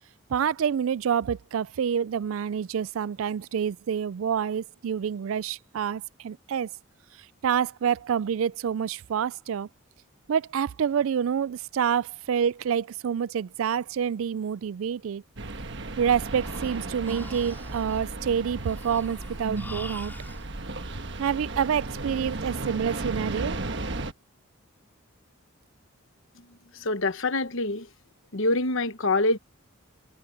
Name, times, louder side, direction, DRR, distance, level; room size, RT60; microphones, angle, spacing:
voice 1, 0.3-6.7 7.4-9.7 10.3-15.2 16.0-20.1 21.2-23.6, right 7 dB, 70° right, 0.3 m, -27 dB
sound 1, 15.4-24.1, right 2 dB, 55° right, 1.4 m, -34 dB
Breathing, 16.1-20.4, left 2 dB, 10° left, 4.6 m, -46 dB
voice 2, 26.7-27.9 28.3-29.4, left 2 dB, 65° left, 1.1 m, -25 dB
head